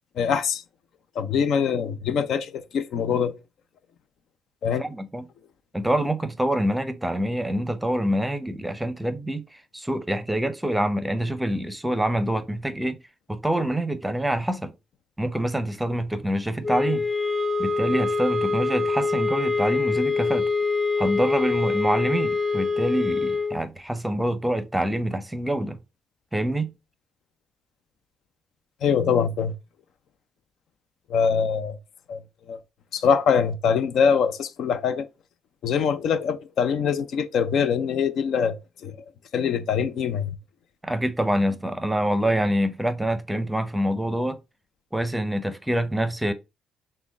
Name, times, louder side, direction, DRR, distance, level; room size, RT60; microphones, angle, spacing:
voice 1, 0.2-0.6 1.1-3.3 4.6-4.8 28.8-29.5 31.1-31.8 32.1-32.2 32.5-32.6 32.9-35.1 35.6-39.0 39.3-40.4, left 6 dB, 70° left, 0.5 m, -23 dB
voice 2, 4.8-5.2 5.7-13.0 13.3-14.7 15.2-17.1 17.6-20.5 21.0-25.8 26.3-26.7 40.8-44.4 44.9-46.3, right 1 dB, 5° right, 0.7 m, -26 dB
sound 1, 16.6-23.6, left 4 dB, 20° left, 2.4 m, -25 dB
6.1 x 2.2 x 3.5 m
cardioid pair, 90°, 0 cm